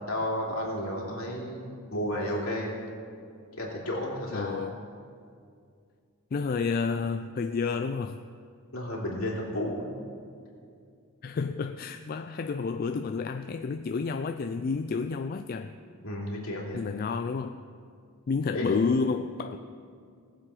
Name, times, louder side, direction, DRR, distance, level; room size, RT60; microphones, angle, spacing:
voice 1, 0.1-2.7 3.5-4.6 8.7-10.0 16.0-16.8 18.5-18.7, left 1 dB, 70° left, -3 dB, 3.0 m, -32 dB
voice 2, 4.3-4.8 6.3-8.2 11.2-15.8 16.7-17.6 18.3-19.6, left 4 dB, 40° left, 7 dB, 0.3 m, -30 dB
19.5 x 7.5 x 4.9 m, 2.3 s
head